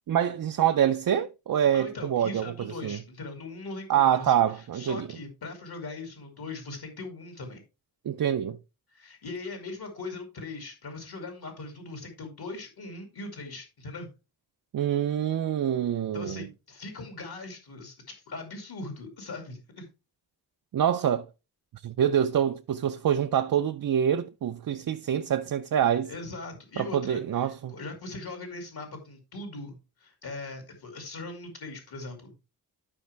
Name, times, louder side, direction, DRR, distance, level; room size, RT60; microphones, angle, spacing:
voice 1, 0.1-3.0 3.9-5.1 8.1-8.6 14.7-16.5 20.7-21.3 21.8-26.1 26.8-27.7, right 9 dB, 60° right, 0.5 m, -26 dB
voice 2, 1.7-4.3 4.7-7.6 8.9-14.1 16.1-17.9 18.3-19.9 26.1-32.4, left 3 dB, 70° left, 2.5 m, -40 dB
12.0 x 5.3 x 3.3 m
wide cardioid pair, 175°, 39 cm